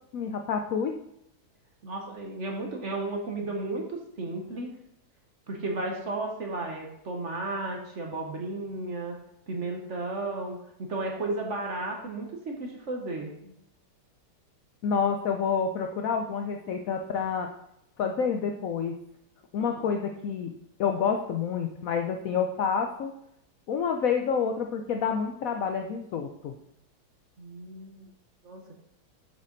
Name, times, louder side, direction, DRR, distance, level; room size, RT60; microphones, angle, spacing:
voice 1, 0.1-1.0 14.8-17.5 18.0-19.0 19.5-20.5 20.8-23.1 23.7-26.5, left 6 dB, 90° left, 4 dB, 0.7 m, -28 dB
voice 2, 1.8-4.7 5.5-9.2 9.5-13.5 19.8-19.9 27.4-28.1 28.4-28.8, right 2 dB, 45° right, 1 dB, 1.1 m, -34 dB
7.1 x 6.5 x 3.9 m, 0.78 s
omnidirectional pair, 2.2 m